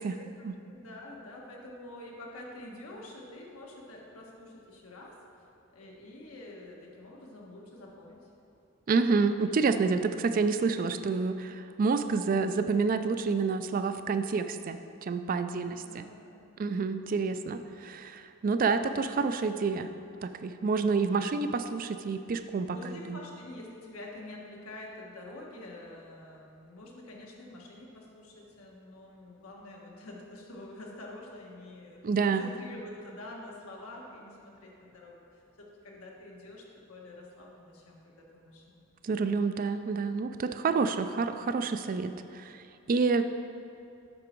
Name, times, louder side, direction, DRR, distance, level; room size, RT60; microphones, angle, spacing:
voice 1, 0.1-8.3 15.4-16.5 22.7-38.8, left 1 dB, 90° left, -2 dB, 1.4 m, -47 dB
voice 2, 8.9-16.1 16.6-19.9 20.2-23.2 32.0-32.5 39.0-42.6 42.9-43.2, right 4 dB, 40° right, 10 dB, 0.3 m, -28 dB
8.5 x 6.1 x 4.5 m, 2.6 s
head